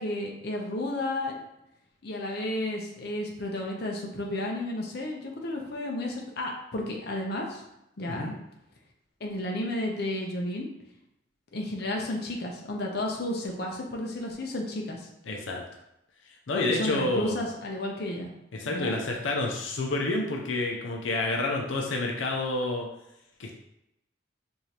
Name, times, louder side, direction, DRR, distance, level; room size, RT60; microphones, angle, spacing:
voice 1, 0.0-1.3 2.0-7.6 8.0-8.3 9.2-10.7 11.5-15.1 16.5-18.3 18.7-18.9, left 1 dB, 55° left, 0 dB, 0.6 m, -32 dB
voice 2, 15.2-15.6 16.5-17.4 18.5-22.9 23.4-23.5, left 2 dB, 90° left, 1 dB, 0.6 m, -29 dB
4.9 x 2.7 x 2.9 m, 0.86 s
head